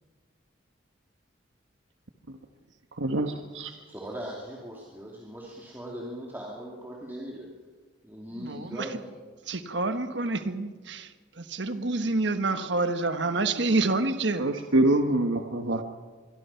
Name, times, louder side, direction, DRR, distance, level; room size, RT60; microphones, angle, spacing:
voice 1, 3.0-3.7 14.4-15.8, right 1 dB, 85° right, 4 dB, 1.4 m, -25 dB
voice 2, 3.9-7.5 8.0-9.1, equal, 10° right, -4 dB, 2.9 m, -39 dB
voice 3, 8.3-8.9 9.5-11.1 11.4-14.5 15.7-15.8, right 3 dB, 65° right, 9 dB, 1.3 m, -28 dB
25.0 x 22.5 x 5.8 m, 1.4 s
head